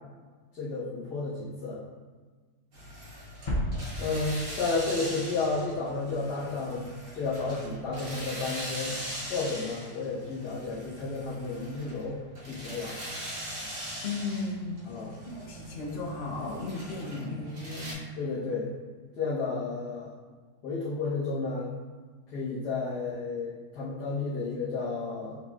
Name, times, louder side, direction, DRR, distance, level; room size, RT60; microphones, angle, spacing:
voice 1, 0.5-1.8 4.0-9.0 9.3-12.2 12.5-13.0 14.9-15.1 18.2-18.7 19.2-20.1 20.6-21.7 22.3-25.4, left 3 dB, 85° left, -11 dB, 1.6 m, -32 dB
sound 1, 2.7-17.9, equal, 55° right, 1.6 m, -41 dB
sound 2, 3.5-5.5, equal, 65° left, 0.4 m, -33 dB
voice 2, 14.0-18.0, left 3 dB, 50° left, -3 dB, 0.9 m, -35 dB
5.4 x 3.9 x 2.4 m, 1.4 s
omnidirectional pair, 1.7 m